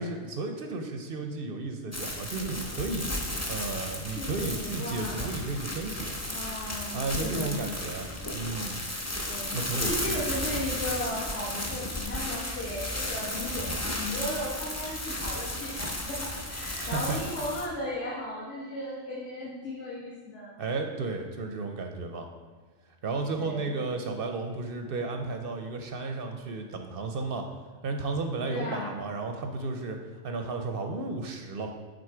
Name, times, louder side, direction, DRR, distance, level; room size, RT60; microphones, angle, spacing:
voice 1, 0.0-6.2 6.9-8.1 8.3-8.8 9.5-10.2 16.8-17.2 20.6-22.3 23.0-27.5 27.8-30.0 30.2-31.7, right 3 dB, 55° right, 4 dB, 0.6 m, -33 dB
sound 1, 1.9-17.7, left 1 dB, 20° left, 0.4 m, -34 dB
voice 2, 4.1-5.5 6.3-7.6 9.3-20.6 23.4-23.7 28.5-28.9, left 1 dB, 60° left, -8 dB, 1.6 m, -36 dB
7.7 x 3.9 x 4.8 m, 1.4 s
omnidirectional pair, 1.4 m